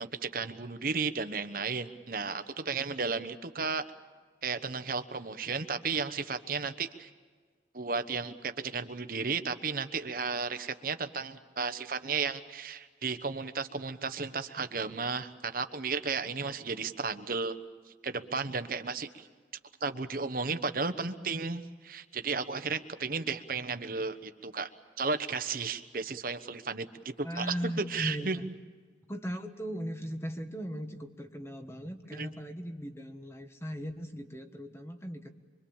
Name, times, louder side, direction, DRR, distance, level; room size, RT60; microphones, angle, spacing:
voice 1, 0.0-3.8 4.4-7.1 7.7-17.5 18.0-19.3 19.8-24.7 25.0-26.9 27.2-27.5 27.9-28.5 32.2-32.3, right 4 dB, 50° right, 10 dB, 1.1 m, -34 dB
voice 2, 27.2-28.5 29.1-35.3, equal, 15° left, 7 dB, 1.4 m, -38 dB
25.5 x 24.0 x 7.2 m, 1.5 s
head